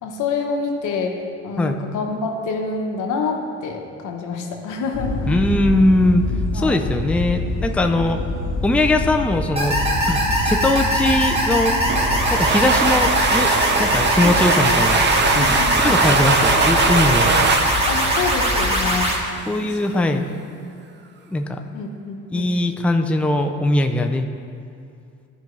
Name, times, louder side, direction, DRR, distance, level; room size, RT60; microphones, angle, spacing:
voice 1, 0.0-5.2 6.5-6.8 14.2-14.4 15.3-16.0 17.9-19.2 19.6-20.3 21.7-22.6, left 4 dB, 80° left, 2 dB, 1.1 m, -27 dB
sound 1, 4.9-19.0, left 2 dB, 65° left, 1.5 m, -27 dB
voice 2, 5.3-6.2 6.5-8.2 8.6-9.8 10.1-11.7 12.3-13.5 13.8-15.1 15.3-17.3 19.5-20.3 21.3-21.6 22.3-24.3, left 1 dB, 5° left, 5 dB, 0.5 m, -20 dB
sound 2, 9.6-19.2, right 1 dB, 20° right, 1.6 m, -21 dB
sound 3, 11.9-19.4, right 4 dB, 35° right, 0.6 m, -21 dB
13.0 x 5.1 x 3.2 m, 2.4 s
cardioid pair, 90°, 30 cm